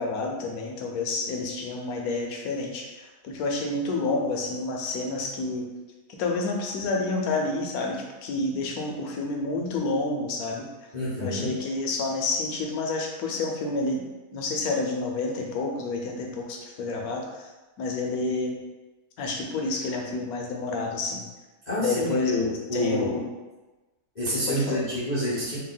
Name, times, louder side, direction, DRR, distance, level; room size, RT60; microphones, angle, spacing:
voice 1, 0.0-5.7 6.2-10.7 11.2-14.1 14.3-17.5 17.8-18.6 19.2-21.2 21.8-23.2 24.5-24.8, left 3 dB, 65° left, 1 dB, 1.0 m, -29 dB
voice 2, 10.9-11.5 21.7-23.1 24.2-25.6, left 1 dB, 50° left, -9 dB, 0.5 m, -28 dB
3.4 x 2.2 x 3.8 m, 1.1 s
omnidirectional pair, 1.8 m